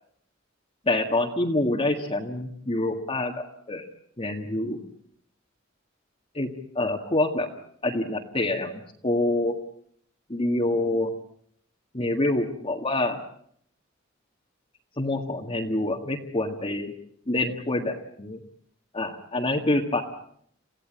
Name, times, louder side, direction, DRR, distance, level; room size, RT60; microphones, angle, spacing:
voice 1, 0.9-3.3 3.7-3.9 4.2-4.8 6.3-7.5 7.8-8.7 9.0-9.6 10.3-11.1 11.9-13.2 15.0-16.9 17.3-18.4 18.9-20.0, left 2 dB, 30° left, 0 dB, 1.9 m, -26 dB
28.0 x 16.5 x 8.8 m, 0.67 s
head